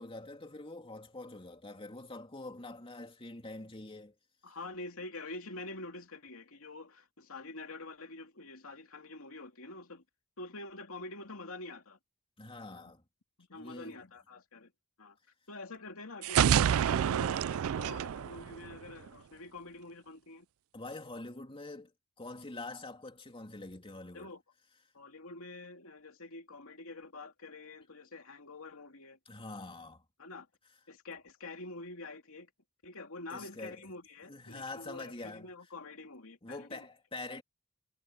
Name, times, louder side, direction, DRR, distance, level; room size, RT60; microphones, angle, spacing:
voice 1, 0.0-4.1 12.4-13.0 13.5-14.0 20.7-21.9 22.2-24.3 29.3-30.0 33.3-33.8 34.3-35.5 36.4-37.4, left 2 dB, 25° left, 2.9 m, -45 dB
voice 2, 4.4-10.0 10.4-12.0 12.7-12.9 13.4-14.7 15.0-15.2 15.5-20.5 24.1-24.4 24.9-29.2 30.2-30.5 30.9-32.5 32.8-36.8, left 2 dB, 70° left, 2.9 m, -46 dB
sound 1, 16.2-19.1, right 9 dB, 70° right, 0.4 m, -28 dB
head